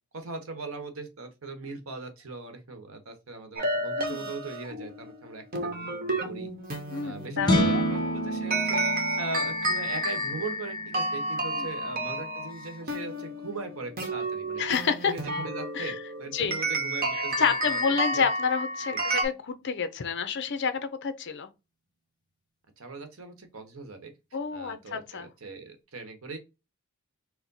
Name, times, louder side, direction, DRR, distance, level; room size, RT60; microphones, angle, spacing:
voice 1, 0.1-6.5 7.0-14.6 15.0-18.3 18.9-19.2 22.8-24.1 24.5-26.4, right 3 dB, 65° right, 1.0 m, -40 dB
sound 1, 3.6-19.2, right 1 dB, 40° right, 1.0 m, -31 dB
voice 2, 6.9-7.8 11.6-11.7 14.6-15.1 15.7-16.0 16.3-16.6 17.1-21.5 24.3-25.3, left 6 dB, 50° left, 0.6 m, -29 dB
sound 2, 7.4-13.8, right 1 dB, 20° left, 0.8 m, -31 dB
4.5 x 2.1 x 3.9 m
head